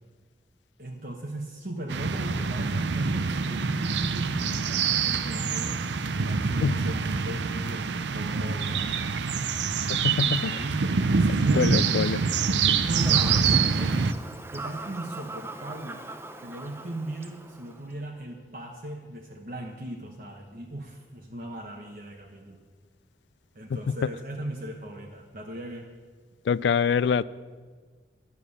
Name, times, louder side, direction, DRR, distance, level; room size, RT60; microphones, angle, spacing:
voice 1, 0.8-5.8 6.2-9.3 10.2-14.1 14.5-16.0 16.4-22.6 23.5-25.9, right 1 dB, 50° right, 1 dB, 1.0 m, -37 dB
sound 1, 1.9-14.1, right 5 dB, 90° right, 0.6 m, -26 dB
voice 2, 9.9-10.5 11.5-12.2 26.5-27.2, left 6 dB, 90° left, 19 dB, 0.4 m, -24 dB
Fowl / Bird vocalization bird call bird song, 12.9-17.9, right 2 dB, 15° right, 0.5 m, -41 dB
11.0 x 7.0 x 8.3 m, 1.5 s
head